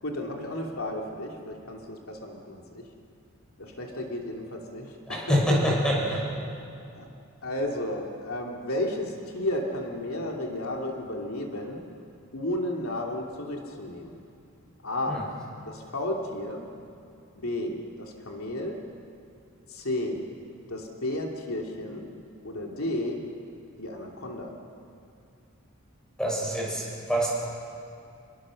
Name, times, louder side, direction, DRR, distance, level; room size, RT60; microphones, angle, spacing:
voice 1, 0.0-2.9 3.6-5.6 6.2-6.5 6.9-7.1 7.4-11.8 12.3-14.2 14.8-15.2 15.6-16.7 17.3-18.8 19.7-20.2 20.7-22.1 22.4-23.2 23.8-24.5, left 1 dB, 90° left, 0 dB, 3.0 m, -33 dB
voice 2, 5.1-6.2 15.1-15.2 26.2-27.3, equal, 5° left, -3 dB, 7.3 m, -25 dB
29.5 x 22.0 x 6.5 m, 2.5 s
head